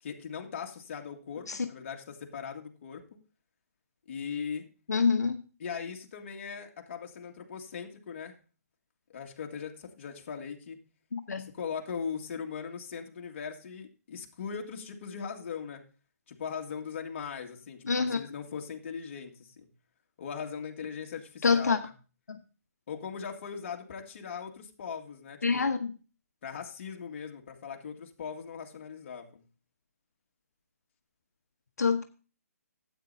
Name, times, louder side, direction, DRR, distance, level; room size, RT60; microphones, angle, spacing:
voice 1, 0.0-3.1 4.1-4.7 5.6-8.4 9.1-10.8 11.4-15.8 16.3-19.7 20.2-21.9 22.9-25.7 26.4-29.4, left 6 dB, 45° left, 2.0 m, -39 dB
voice 2, 4.9-5.4 11.1-11.5 17.9-18.2 21.4-21.8 22.3-22.4 25.4-26.0 31.8-32.0, left 5 dB, 85° left, 1.0 m, -26 dB
13.5 x 8.7 x 2.7 m
hypercardioid pair, 155°, 9 cm